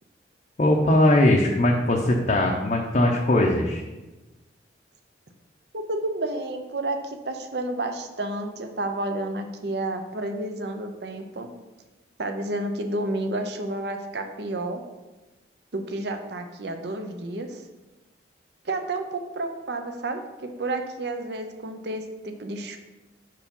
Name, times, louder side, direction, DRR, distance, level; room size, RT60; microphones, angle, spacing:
voice 1, 0.6-3.8, left 1 dB, 40° left, -1 dB, 0.6 m, -20 dB
voice 2, 5.7-11.5 12.2-14.8 15.7-17.6 18.6-22.8, right 2 dB, 60° right, 6 dB, 0.7 m, -30 dB
6.0 x 4.7 x 5.3 m, 1.1 s
head